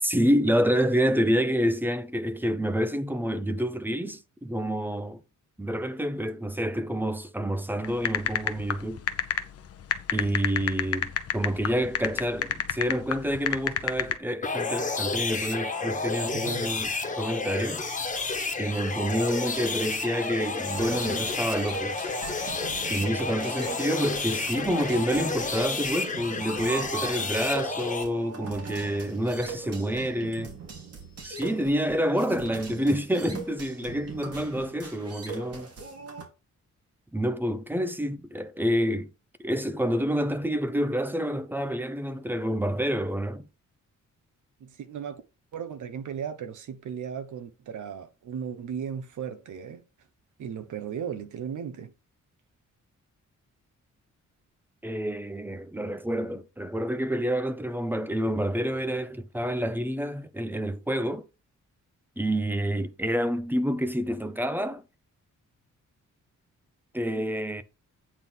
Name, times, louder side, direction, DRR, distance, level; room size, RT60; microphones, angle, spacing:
voice 1, 0.0-5.2 5.6-9.0 10.1-16.9 17.2-17.8 18.6-22.0 22.9-30.6 31.2-35.7 37.1-39.1 39.4-43.5 54.8-61.3 62.2-64.8 66.9-67.6, equal, 5° right, 0.6 m, -28 dB
sound 1, 7.8-14.1, left 9 dB, 50° left, 0.8 m, -28 dB
sound 2, 14.4-28.0, left 4 dB, 25° left, 1.4 m, -31 dB
voice 2, 16.3-16.7 29.0-30.3 44.6-45.2 45.5-49.8 50.4-51.9, right 7 dB, 70° right, 1.2 m, -37 dB
sound 3, 20.7-36.2, right 5 dB, 50° right, 2.8 m, -41 dB
8.8 x 3.7 x 6.0 m
wide cardioid pair, 160°, 31 cm